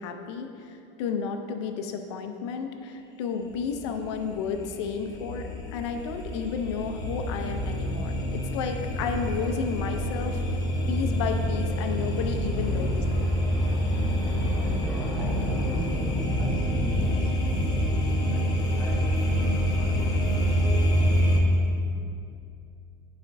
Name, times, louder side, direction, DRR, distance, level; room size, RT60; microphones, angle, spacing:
voice 1, 0.0-8.1 8.5-10.4 10.9-12.9 13.1-13.3, left 6 dB, 90° left, 5 dB, 0.6 m, -32 dB
sound 1, 3.5-21.4, equal, 25° left, 0.8 m, -27 dB
voice 2, 10.7-11.1 11.8-22.0, equal, 5° left, -6 dB, 1.5 m, -37 dB
11.0 x 4.3 x 2.7 m, 2.6 s
cardioid pair, 160°, 14 cm